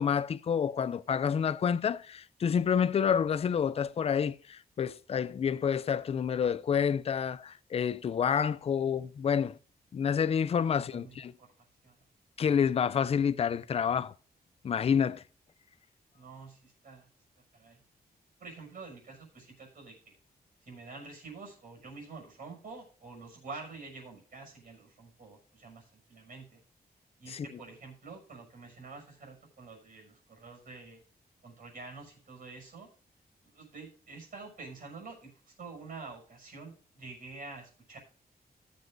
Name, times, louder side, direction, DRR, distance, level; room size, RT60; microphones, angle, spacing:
voice 1, 0.0-9.6 9.9-11.3 12.4-14.1 14.6-15.2 27.3-27.5, left 7 dB, 40° left, 0.4 m, -28 dB
voice 2, 10.7-12.0 16.1-17.1 17.5-17.8 18.4-20.2 20.6-26.6 27.2-31.0 31.4-32.9 33.4-38.0, right 4 dB, 60° right, 6.1 m, -48 dB
19.0 x 8.0 x 2.6 m
wide cardioid pair, 155°, 17 cm